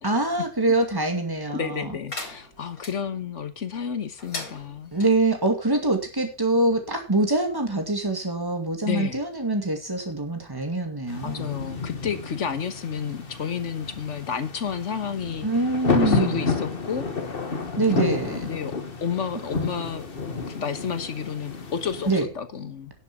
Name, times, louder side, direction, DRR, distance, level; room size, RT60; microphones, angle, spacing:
voice 1, 0.0-1.9 4.9-11.5 15.4-16.4 17.8-18.4 22.1-22.3, right 2 dB, 15° right, 4 dB, 2.3 m, -24 dB
voice 2, 1.5-4.9 8.8-9.2 11.2-15.5 15.9-17.1 18.0-18.1 18.4-18.7 19.0-20.1 20.5-22.1 22.3-22.9, left 7 dB, 60° left, 11 dB, 1.5 m, -31 dB
sound 1, 2.1-2.9 4.2-5.1, left 3 dB, 90° left, 3.9 m, -37 dB
sound 2, 11.1-22.2, left 4 dB, 40° left, 1.6 m, -30 dB
11.0 x 7.3 x 6.0 m, 0.33 s
omnidirectional pair, 1.5 m